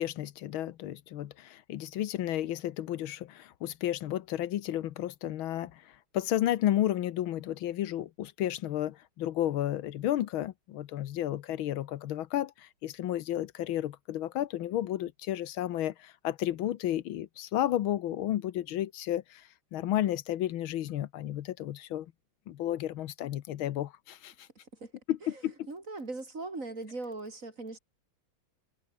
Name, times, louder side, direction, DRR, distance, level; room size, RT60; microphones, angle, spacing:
voice 1, 0.0-5.8 6.1-19.4 19.7-22.1 22.5-24.3 25.1-25.7, left 12 dB, 85° left, 1.7 m, -32 dB
voice 2, 25.7-27.8, right 3 dB, 40° right, 4.2 m, -39 dB
omnidirectional pair, 2.2 m